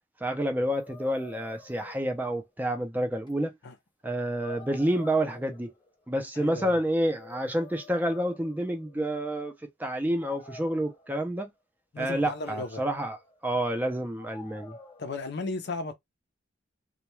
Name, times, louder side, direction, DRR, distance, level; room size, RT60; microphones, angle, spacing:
voice 1, 0.2-3.5 4.0-5.7 6.1-9.5 9.8-11.5 12.0-13.2 13.4-14.8, right 1 dB, 10° right, 0.4 m, -29 dB
sound 1, 0.7-2.4 3.3-3.4 4.4-5.9 6.9-9.2 10.1-11.3 12.0-13.4 14.2-15.2, left 2 dB, 25° left, 0.7 m, -49 dB
voice 2, 6.4-6.8 11.9-12.8 15.0-15.9, left 3 dB, 65° left, 0.5 m, -35 dB
2.2 x 2.2 x 2.9 m
head